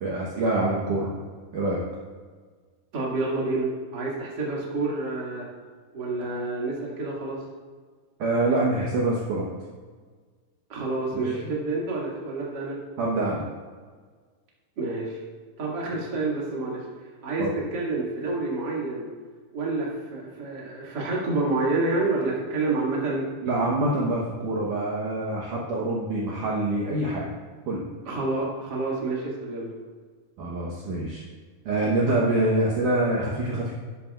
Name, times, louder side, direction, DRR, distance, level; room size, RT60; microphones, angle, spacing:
voice 1, 0.0-1.1 1.5-1.8 8.2-9.5 11.2-11.5 13.0-13.4 17.4-17.5 23.4-27.3 27.7-27.9 30.4-31.2 31.7-33.7, right 2 dB, 80° right, -4 dB, 1.8 m, -25 dB
voice 2, 2.9-5.4 5.9-7.4 10.7-12.8 14.8-15.2 15.6-16.8 17.2-17.4 17.7-19.1 19.5-23.2 28.0-29.7, right 3 dB, 35° right, -5 dB, 1.7 m, -28 dB
11.5 x 11.0 x 2.5 m, 1.5 s
omnidirectional pair, 5.3 m